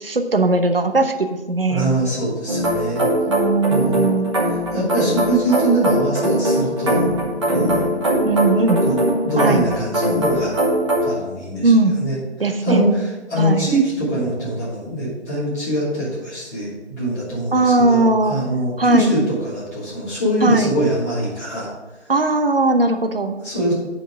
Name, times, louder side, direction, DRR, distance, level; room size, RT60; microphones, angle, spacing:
voice 1, 0.0-1.9 3.3-4.3 8.2-8.9 9.4-9.6 11.6-11.9 12.4-12.8 13.4-13.7 17.5-18.4 18.8-19.1 20.4-20.7 22.1-23.4, right 3 dB, 55° right, 7 dB, 0.9 m, -18 dB
voice 2, 1.7-3.1 3.7-4.2 4.7-7.1 7.5-7.8 8.6-10.5 11.0-12.2 12.6-21.7 23.4-23.7, right 1 dB, 15° left, -12 dB, 3.2 m, -23 dB
sound 1, 2.5-11.2, equal, 25° right, 1.5 m, -21 dB
10.0 x 4.6 x 5.1 m, 1.1 s
figure-of-eight pair, 160°, 35 cm